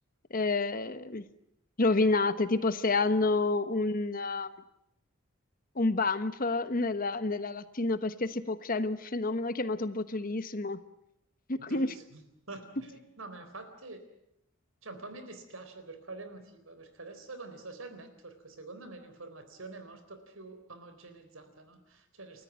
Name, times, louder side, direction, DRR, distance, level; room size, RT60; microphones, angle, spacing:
voice 1, 0.3-1.2 1.8-4.5 5.7-10.8 11.5-11.9, left 3 dB, 45° left, 12 dB, 1.1 m, -29 dB
voice 2, 11.6-14.0 14.8-22.4, right 3 dB, 85° right, 9 dB, 4.0 m, -46 dB
30.0 x 14.0 x 9.4 m, 0.79 s
head